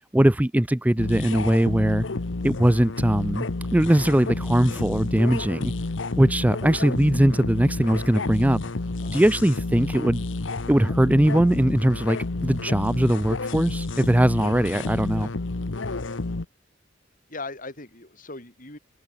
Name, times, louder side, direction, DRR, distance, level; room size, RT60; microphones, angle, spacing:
voice 1, 0.1-2.1 2.4-3.4 3.7-5.7 6.2-8.6 9.1-10.2 10.7-12.2 12.4-15.3, right 1 dB, 10° right, 0.5 m, -20 dB
sound 1, 1.0-16.5, left 2 dB, 85° left, 1.0 m, -30 dB
voice 2, 17.3-18.8, left 3 dB, 45° left, 6.2 m, -39 dB
head